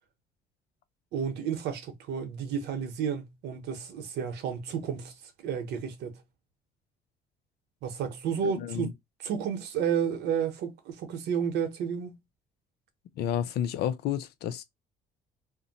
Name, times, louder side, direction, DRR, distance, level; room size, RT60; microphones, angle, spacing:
voice 1, 1.1-5.1 5.4-6.2 7.8-8.9 9.2-12.2, right 7 dB, 80° right, 0.9 m, -31 dB
voice 2, 8.4-8.9 13.2-14.6, left 10 dB, 75° left, 0.5 m, -31 dB
2.6 x 2.1 x 3.9 m
cardioid pair, 110°, 17 cm